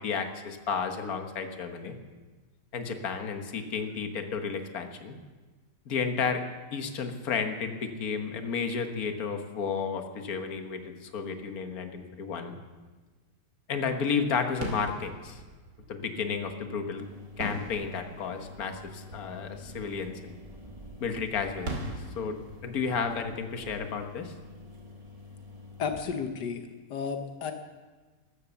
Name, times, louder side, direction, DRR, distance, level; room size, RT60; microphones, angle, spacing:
voice 1, 0.0-1.9 2.7-5.1 5.9-6.4 6.7-12.6 13.7-15.4 15.9-17.0 17.4-20.4 21.0-22.4 22.6-24.3, left 5 dB, 60° left, 6 dB, 1.7 m, -32 dB
sound 1, 14.5-25.1, right 1 dB, 90° right, 3.3 m, -43 dB
sound 2, 17.0-26.0, left 3 dB, 20° right, 1.8 m, -48 dB
voice 2, 25.8-27.5, left 6 dB, 85° left, 6 dB, 1.7 m, -33 dB
14.0 x 12.5 x 7.0 m, 1.3 s
omnidirectional pair, 1.8 m